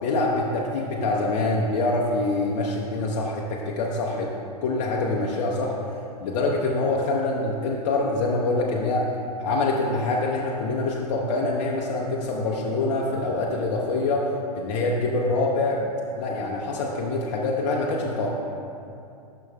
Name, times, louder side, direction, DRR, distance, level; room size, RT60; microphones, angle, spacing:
voice 1, 0.0-4.3 4.6-5.7 6.2-9.1 9.4-18.4, left 2 dB, 55° left, -2 dB, 0.7 m, -25 dB
10.5 x 6.1 x 2.2 m, 2.7 s
hypercardioid pair, 105°, 20 cm